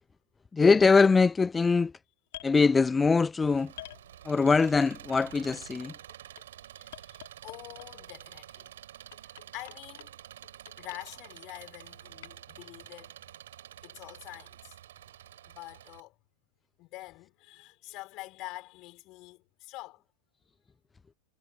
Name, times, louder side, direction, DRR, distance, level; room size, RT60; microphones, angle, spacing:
voice 1, 0.5-1.9 2.4-3.7 4.3-5.9, left 4 dB, 15° left, 0.4 m, -22 dB
sound 1, 2.3-2.6 3.8-4.6 5.6-6.5 6.9-8.1 9.1-10.1 10.4-11.0 12.2-12.3, left 14 dB, 55° left, 3.8 m, -47 dB
Engine, 3.5-16.0, right 11 dB, 60° right, 4.6 m, -49 dB
voice 2, 6.5-8.7 9.2-10.2 10.8-13.1 13.8-14.8 15.4-16.2 16.8-20.0, left 20 dB, 40° left, 5.1 m, -46 dB
figure-of-eight pair, 90°, 0 cm